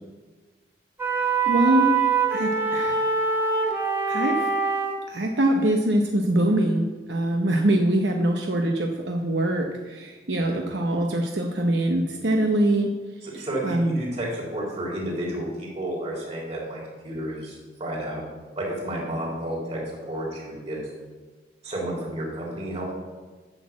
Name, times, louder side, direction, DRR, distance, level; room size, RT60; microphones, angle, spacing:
sound 1, 1.0-5.0, right 5 dB, 15° right, 1.7 m, -23 dB
voice 1, 1.4-2.0 2.3-3.1 4.1-4.5 5.1-12.9 13.3-14.0, right 1 dB, 75° right, 2 dB, 0.9 m, -23 dB
voice 2, 10.4-10.7 13.2-18.2 18.6-20.8 21.6-22.9, right 1 dB, 35° right, -4 dB, 3.6 m, -31 dB
10.0 x 6.3 x 7.4 m, 1.3 s
head